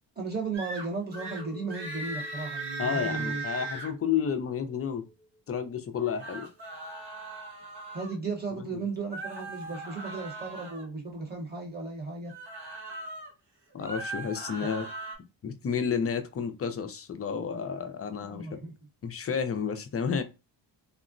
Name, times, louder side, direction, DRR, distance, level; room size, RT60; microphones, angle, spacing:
voice 1, 0.2-3.4 7.9-12.3 18.2-18.7, right 4 dB, 20° right, 0.9 m, -35 dB
sound 1, 0.5-0.8 1.1-1.4 1.7-3.9 6.0-8.1 9.1-10.8 12.2-13.3 13.7-15.1, right 3 dB, 60° right, 1.3 m, -38 dB
Chink clink, 1.1-6.6, left 1 dB, ahead, 0.7 m, -52 dB
voice 2, 2.8-5.0 5.5-6.5 8.6-8.8 13.7-14.9 15.4-18.6 19.0-20.2, left 7 dB, 35° left, 0.4 m, -31 dB
3.6 x 2.0 x 2.5 m
wide cardioid pair, 155°, 44 cm